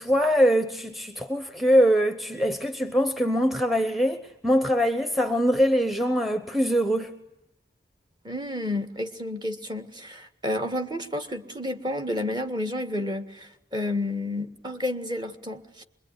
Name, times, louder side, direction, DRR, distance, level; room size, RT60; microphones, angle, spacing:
voice 1, 0.0-7.2, equal, ahead, 1.0 m, -23 dB
voice 2, 8.2-15.8, left 1 dB, 25° right, 1.8 m, -31 dB
25.5 x 22.0 x 9.9 m
head